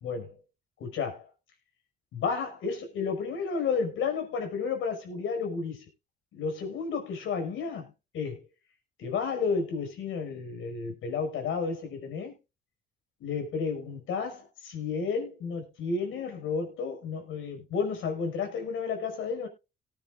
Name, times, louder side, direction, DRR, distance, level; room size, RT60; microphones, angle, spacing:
voice 1, 0.0-0.4 0.8-1.3 2.1-5.8 6.3-8.5 9.0-12.3 13.2-19.5, left 5 dB, 80° left, 5.5 m, -32 dB
19.0 x 9.9 x 2.5 m
cardioid pair, 90°, 20 cm